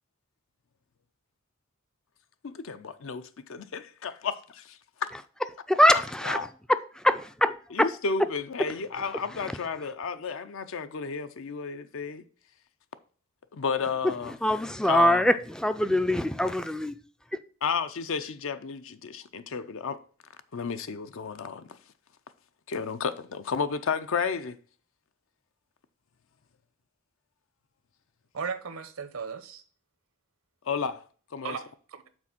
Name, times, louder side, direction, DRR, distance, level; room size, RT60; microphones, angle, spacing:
voice 1, 2.4-5.1 7.8-12.2 13.5-14.3 14.9-15.2 17.6-20.0 20.5-21.8 22.7-24.6 30.7-31.0 31.3-31.6, left 5 dB, 70° left, 0.6 m, -32 dB
voice 2, 5.1-8.3 8.6-9.9 14.0-17.0 17.3-17.4, left 1 dB, 5° left, 0.3 m, -25 dB
voice 3, 28.3-29.6 31.4-32.1, right 6 dB, 80° right, 0.8 m, -36 dB
6.1 x 4.2 x 6.0 m
head